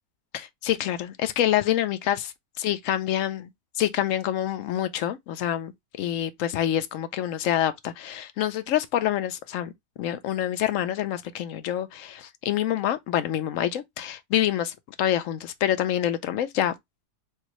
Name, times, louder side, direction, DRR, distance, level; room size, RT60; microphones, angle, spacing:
voice 1, 0.3-3.5 3.8-5.7 6.0-9.7 10.0-16.7, left 11 dB, 70° left, 0.8 m, -26 dB
4.5 x 2.4 x 2.9 m
omnidirectional pair, 1.7 m